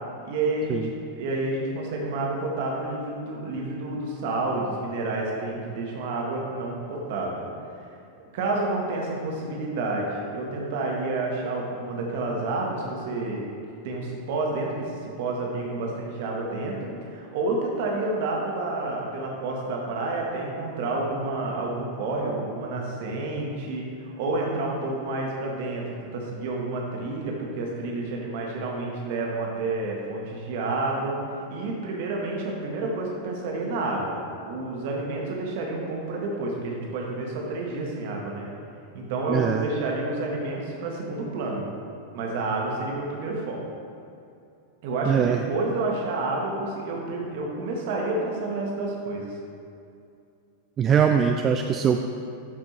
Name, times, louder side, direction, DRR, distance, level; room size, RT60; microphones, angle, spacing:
voice 1, 0.2-0.8 1.2-7.5 8.3-13.4 13.8-14.7 15.0-31.1 31.5-38.5 38.9-41.7 42.1-43.6 44.8-49.3, right 2 dB, 50° right, -1 dB, 1.5 m, -29 dB
voice 2, 39.3-39.7 45.1-45.4 50.8-52.1, right 7 dB, 25° right, 5 dB, 0.3 m, -22 dB
12.5 x 5.1 x 3.2 m, 2.5 s
figure-of-eight pair, 90°, 0 cm